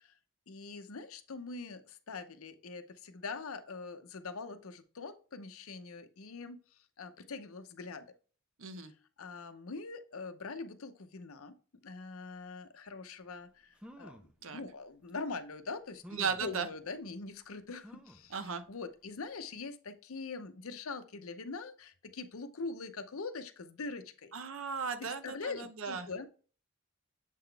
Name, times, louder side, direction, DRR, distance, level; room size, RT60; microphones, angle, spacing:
voice 1, 0.5-6.6 7.0-8.1 9.2-11.5 11.8-24.3 25.0-26.3, left 4 dB, 75° left, 10 dB, 0.7 m, -43 dB
voice 2, 8.6-8.9 14.4-14.6 16.1-16.7 18.3-18.6 24.3-26.1, right 5 dB, 70° right, 10 dB, 0.7 m, -36 dB
sound 1, 13.3-13.4 13.8-14.3 15.1-15.2 16.0-16.5 17.8-18.3 18.8-18.9 19.2-19.3, equal, 5° right, 0.5 m, -51 dB
7.4 x 3.9 x 3.3 m, 0.39 s
head